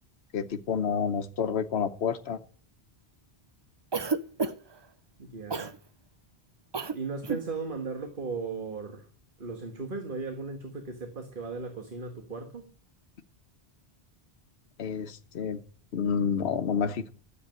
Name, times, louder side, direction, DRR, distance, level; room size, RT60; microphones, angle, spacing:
voice 1, 0.3-2.4 14.8-15.6 15.9-17.1, left 6 dB, 75° left, 1.1 m, -29 dB
Cough, 3.9-4.8 5.5-5.8 6.7-7.0 7.2-7.5, right 4 dB, 30° right, 0.6 m, -30 dB
voice 2, 5.2-5.8 6.9-9.1 9.4-12.7, right 4 dB, 55° right, 1.7 m, -36 dB
12.5 x 8.1 x 9.0 m
omnidirectional pair, 1.1 m